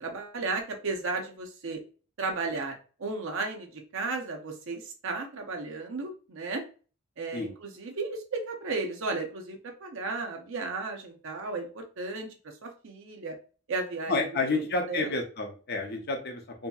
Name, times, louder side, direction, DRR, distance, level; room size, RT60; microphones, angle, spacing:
voice 1, 0.0-1.8 2.2-6.6 7.2-12.3 12.6-13.3 13.7-14.1 14.5-15.1, right 3 dB, 60° right, 3 dB, 0.6 m, -34 dB
voice 2, 14.1-16.7, left 3 dB, 50° left, 2 dB, 0.6 m, -30 dB
2.7 x 2.7 x 2.3 m, 0.37 s
head